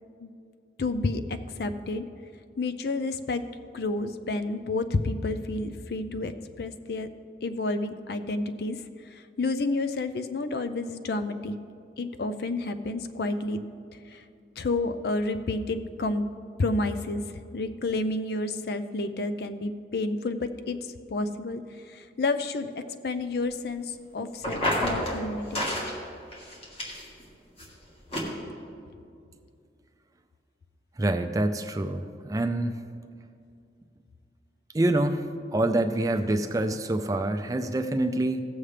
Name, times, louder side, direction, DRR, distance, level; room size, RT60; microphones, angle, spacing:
voice 1, 0.8-2.1 2.6-3.5 3.7-6.3 6.6-7.1 7.4-8.8 9.1-11.5 12.0-13.6 14.1-14.2 14.6-16.3 16.6-17.2 17.5-20.8 21.1-21.6 21.9-22.7 23.0-25.8, left 2 dB, 60° left, 10 dB, 0.5 m, -30 dB
sound 1, 24.4-25.2 25.5-25.9 26.3-27.2 27.6-27.7 28.1-28.2, equal, 35° left, 1.6 m, -29 dB
voice 2, 31.0-32.8 34.7-38.5, right 1 dB, 20° right, 7 dB, 0.4 m, -26 dB
17.0 x 7.2 x 3.3 m, 2.4 s
head